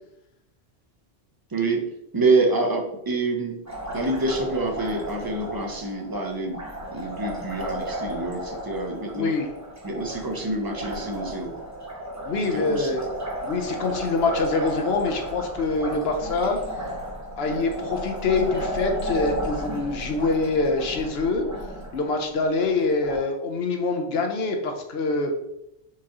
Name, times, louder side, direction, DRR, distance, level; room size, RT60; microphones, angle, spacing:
voice 1, 1.5-1.9 2.1-3.6 3.9-6.6 6.9-9.3 9.8-11.6 12.5-13.0, right 3 dB, 35° right, 3 dB, 0.4 m, -26 dB
Liquid, 3.7-23.2, equal, 15° right, 0.9 m, -34 dB
voice 2, 9.1-9.5 12.2-13.0 13.4-16.6 17.4-21.5 21.9-25.3, left 3 dB, 70° left, 3 dB, 0.9 m, -25 dB
4.6 x 2.9 x 3.6 m, 0.82 s
omnidirectional pair, 1.1 m